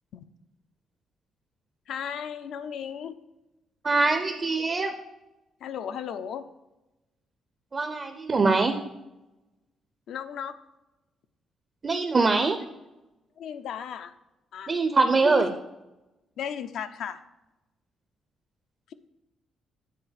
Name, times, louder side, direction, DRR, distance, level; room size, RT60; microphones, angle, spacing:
voice 1, 1.9-3.2 5.6-6.5 10.1-10.6 13.4-14.1 14.5-14.7 15.2-15.6 16.4-17.2, left 8 dB, 70° left, 10 dB, 0.5 m, -35 dB
voice 2, 3.8-4.9 7.7-8.7 11.8-12.6 14.7-15.5, right 3 dB, 25° right, 7 dB, 0.5 m, -23 dB
8.5 x 4.0 x 6.6 m, 1.0 s
cardioid pair, 150°, 0 cm